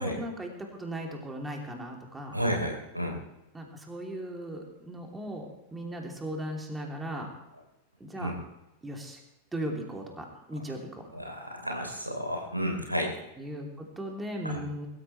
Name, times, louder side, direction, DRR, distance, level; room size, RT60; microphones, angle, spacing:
voice 1, 0.0-2.4 3.5-7.3 8.0-8.3 8.8-9.2 9.5-11.1 13.4-14.9, right 1 dB, 10° right, 1 dB, 3.1 m, -37 dB
voice 2, 2.3-3.2 8.2-8.3 11.1-13.1 14.4-14.6, equal, 90° right, 2 dB, 3.3 m, -31 dB
23.5 x 13.5 x 3.3 m, 0.92 s
figure-of-eight pair, 90°, 0 cm